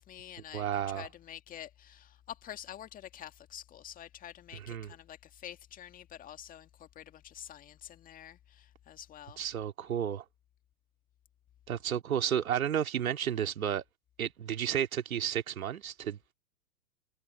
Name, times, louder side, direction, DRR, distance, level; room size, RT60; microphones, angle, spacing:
voice 1, 0.0-9.4, left 10 dB, 15° left, 1.9 m, -48 dB
voice 2, 0.5-1.1 4.5-4.9 9.4-10.2 11.7-13.8 14.2-16.2, right 9 dB, 60° right, 2.6 m, -32 dB
figure-of-eight pair, 120°, 47 cm